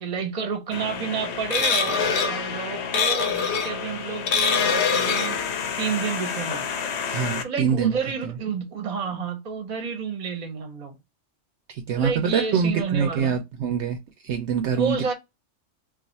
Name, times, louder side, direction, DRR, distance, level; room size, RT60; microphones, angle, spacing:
voice 1, 0.0-5.4 5.8-6.7 7.4-11.0 11.9-13.4 14.7-15.1, right 6 dB, 35° right, 0.7 m, -30 dB
sound 1, 0.7-7.4, left 6 dB, 65° left, 0.8 m, -25 dB
voice 2, 7.1-8.0 8.2-8.3 11.7-14.0 14.2-15.0, right 6 dB, 65° right, 0.8 m, -24 dB
2.5 x 2.4 x 4.0 m
omnidirectional pair, 1.3 m